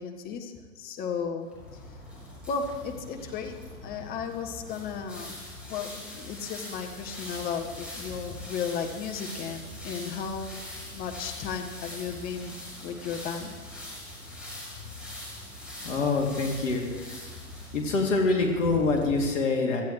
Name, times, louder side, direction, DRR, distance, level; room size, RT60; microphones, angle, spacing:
voice 1, 0.0-1.5 2.5-3.6 3.8-5.4 5.7-10.6 10.9-13.5, left 6 dB, 20° left, 5 dB, 1.4 m, -34 dB
sound 1, 1.5-19.3, left 1 dB, ahead, 6.3 m, -42 dB
voice 2, 15.8-17.2 17.7-19.8, left 3 dB, 55° left, 0 dB, 2.9 m, -26 dB
25.0 x 14.5 x 3.2 m, 1.4 s
figure-of-eight pair, 120°, 45 cm